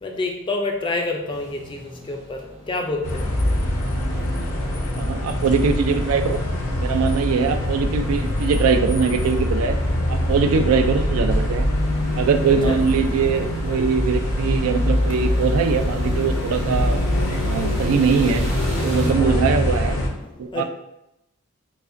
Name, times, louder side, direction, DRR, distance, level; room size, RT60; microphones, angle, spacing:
voice 1, 0.0-2.4 2.7-3.2 12.6-12.8 19.0-19.4 20.5-20.6, left 2 dB, 20° left, 2 dB, 0.3 m, -27 dB
sound 1, 1.3-19.1, right 1 dB, 30° right, 0.6 m, -37 dB
sound 2, 3.0-20.1, left 1 dB, 80° left, 0.6 m, -23 dB
voice 2, 5.0-6.4 6.8-9.8 10.1-11.6 12.1-17.0 17.4-18.4 18.8-19.9 20.4-20.6, right 5 dB, 80° right, 8 dB, 0.3 m, -21 dB
4.7 x 2.1 x 2.5 m, 0.86 s
head